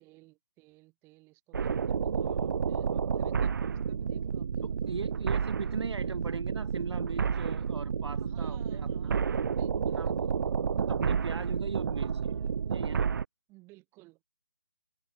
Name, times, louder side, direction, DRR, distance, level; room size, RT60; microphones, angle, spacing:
voice 1, 0.0-6.1 8.2-11.1 11.9-12.2 13.5-14.2, right 22 dB, 15° right, 6.3 m, -59 dB
sound 1, 1.5-13.2, right 6 dB, 40° right, 0.4 m, -30 dB
voice 2, 4.6-9.2 9.9-10.1 10.8-12.1 12.7-13.1, right 4 dB, 55° right, 4.0 m, -39 dB
figure-of-eight pair, 145°, 16 cm